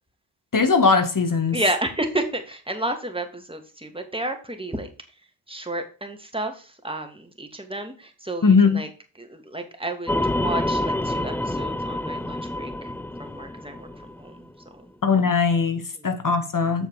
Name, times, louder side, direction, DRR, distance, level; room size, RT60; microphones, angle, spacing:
voice 1, 0.5-1.6 8.4-8.9 15.0-16.9, left 5 dB, 40° left, 2.1 m, -20 dB
voice 2, 1.5-4.9 5.5-8.9 9.2-14.4 14.7-14.9 16.0-16.1, right 1 dB, 10° right, 2.6 m, -31 dB
sound 1, 10.1-14.5, left 1 dB, 5° left, 0.3 m, -27 dB
7.8 x 6.5 x 5.0 m
supercardioid pair, 45°, 49 cm